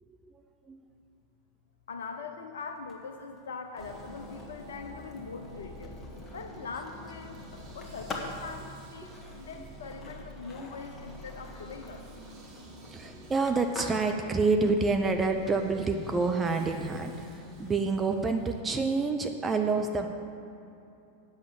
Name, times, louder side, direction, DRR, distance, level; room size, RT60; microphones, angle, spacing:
voice 1, 0.3-0.8 9.0-9.1 10.6-10.7 12.9-20.1, right 3 dB, 15° right, 5 dB, 0.7 m, -28 dB
voice 2, 1.9-5.9 6.3-12.1, left 5 dB, 65° left, 5 dB, 0.6 m, -42 dB
Skateboard, 2.8-18.6, left 2 dB, 20° left, 1.5 m, -48 dB
sound 1, 3.8-18.6, right 1 dB, 35° right, 1.9 m, -48 dB
8.9 x 7.3 x 7.5 m, 2.8 s
figure-of-eight pair, 90°, 0 cm